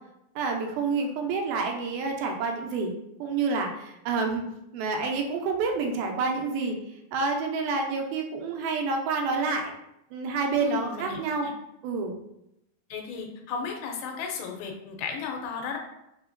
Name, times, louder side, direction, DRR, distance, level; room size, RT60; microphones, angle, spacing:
voice 1, 0.4-3.0 3.2-4.4 4.7-6.8 7.1-9.7 10.1-11.5 11.8-12.1, right 4 dB, 85° right, 2 dB, 2.4 m, -28 dB
voice 2, 10.6-11.5 12.9-15.8, left 5 dB, 80° left, 3 dB, 2.3 m, -34 dB
5.5 x 2.8 x 2.5 m, 0.84 s
omnidirectional pair, 4.3 m